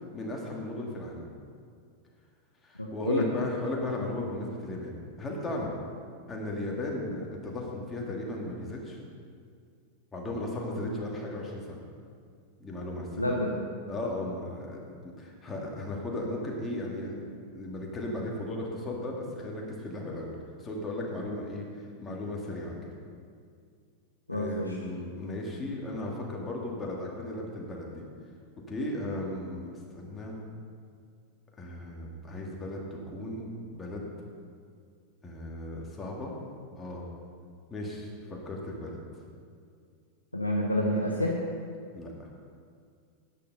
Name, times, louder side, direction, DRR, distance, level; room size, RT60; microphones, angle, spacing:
voice 1, 0.1-1.3 2.6-5.8 6.3-9.0 10.1-11.8 12.6-13.3 13.9-17.2 17.5-22.8 24.3-28.0 28.7-30.4 31.6-34.1 35.2-36.3 36.8-37.0 37.7-39.0 41.9-42.3, left 1 dB, 15° left, -2 dB, 2.3 m, -36 dB
voice 2, 2.8-3.2 10.9-11.0 13.2-13.5 24.3-24.7 40.3-41.3, left 1 dB, 85° left, -2 dB, 1.0 m, -28 dB
10.0 x 9.2 x 5.5 m, 2.2 s
figure-of-eight pair, 90°, 0 cm